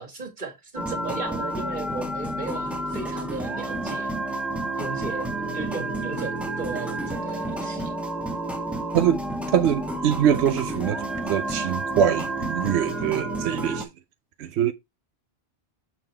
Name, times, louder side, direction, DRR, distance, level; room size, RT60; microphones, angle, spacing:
voice 1, 0.0-4.4 4.8-7.9, right 4 dB, 45° right, 2.0 m, -36 dB
sound 1, 0.8-13.8, right 1 dB, ahead, 1.1 m, -30 dB
voice 2, 9.5-13.9 14.4-14.7, right 9 dB, 90° right, 0.9 m, -23 dB
7.2 x 3.8 x 4.4 m
omnidirectional pair, 1.1 m